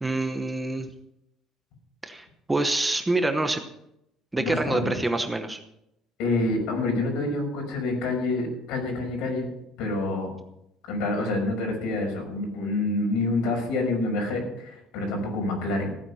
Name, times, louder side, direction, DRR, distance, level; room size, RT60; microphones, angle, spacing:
voice 1, 0.0-0.9 2.0-3.6 4.3-5.6, right 2 dB, 10° right, 7 dB, 1.0 m, -26 dB
voice 2, 4.4-5.0 6.2-9.5 9.8-10.3 10.9-15.9, left 2 dB, 75° left, 2 dB, 6.1 m, -27 dB
15.5 x 9.4 x 5.7 m, 0.80 s
cardioid pair, 165°, 0 cm